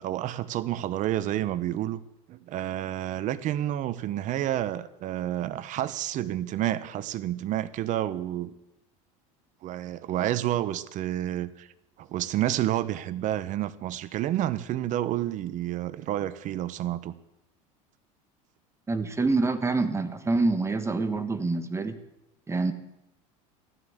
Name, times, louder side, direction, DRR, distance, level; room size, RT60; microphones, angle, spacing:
voice 1, 0.0-2.0 2.3-8.5 9.6-11.7 12.0-17.1, right 13 dB, 45° right, 1.0 m, -29 dB
voice 2, 18.9-22.0 22.5-22.7, right 3 dB, 15° right, 1.4 m, -26 dB
14.0 x 12.0 x 8.1 m
supercardioid pair, 110°, 17 cm